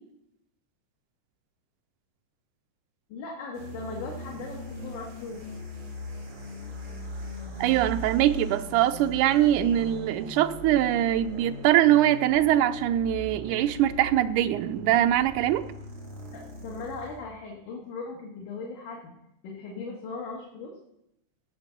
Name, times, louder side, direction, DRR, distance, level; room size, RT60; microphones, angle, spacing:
voice 1, 3.1-5.4 16.3-19.1 19.4-20.7, left 3 dB, 90° left, -1 dB, 3.1 m, -38 dB
sound 1, 3.5-17.2, right 1 dB, 50° right, 3.9 m, -39 dB
voice 2, 7.6-15.6, right 12 dB, 90° right, 11 dB, 2.2 m, -23 dB
18.0 x 6.8 x 5.8 m, 0.83 s
omnidirectional pair, 3.5 m